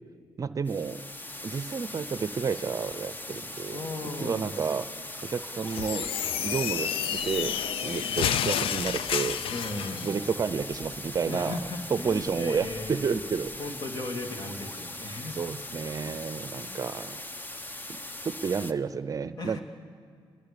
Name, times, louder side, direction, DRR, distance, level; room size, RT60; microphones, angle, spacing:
voice 1, 0.4-1.0 1.4-3.8 4.2-4.9 5.2-6.1 6.4-7.6 7.8-9.4 10.0-11.6 11.9-13.5 15.4-17.2 17.9-18.0 18.2-19.6, right 6 dB, 40° right, 14 dB, 0.7 m, -30 dB
sound 1, 0.6-18.7, left 1 dB, 20° left, 1.1 m, -40 dB
voice 2, 3.7-4.6 8.1-8.3 9.5-10.2 11.3-13.2 13.6-15.4 16.0-16.2 16.6-16.8 19.2-19.6, left 2 dB, 50° left, 4 dB, 2.7 m, -37 dB
sound 2, 4.3-16.3 16.6-16.7, right 1 dB, 5° right, 1.3 m, -49 dB
sound 3, 5.7-10.1, left 9 dB, 80° left, 0.6 m, -30 dB
28.0 x 21.0 x 7.0 m, 2.2 s
cardioid pair, 90°, 9 cm